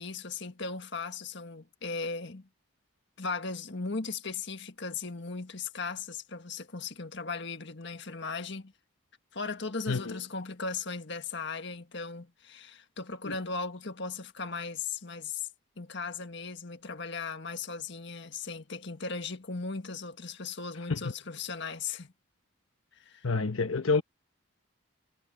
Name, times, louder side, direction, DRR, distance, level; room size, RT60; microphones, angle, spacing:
voice 1, 0.0-2.5 3.2-8.7 9.3-15.5 15.8-22.1 23.0-23.2, left 4 dB, 60° left, 1.7 m, -37 dB
voice 2, 9.9-10.2 13.2-13.3 20.9-21.1 23.2-24.0, left 4 dB, 85° left, 1.0 m, -28 dB
head